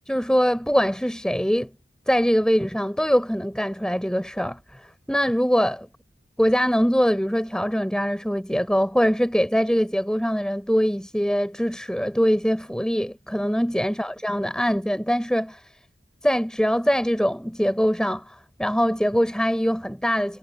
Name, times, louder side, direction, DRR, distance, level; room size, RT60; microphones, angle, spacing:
voice 1, 0.1-1.7 2.1-4.6 5.1-5.9 6.4-15.6 16.2-20.4, equal, 5° left, 5.8 m, -23 dB
head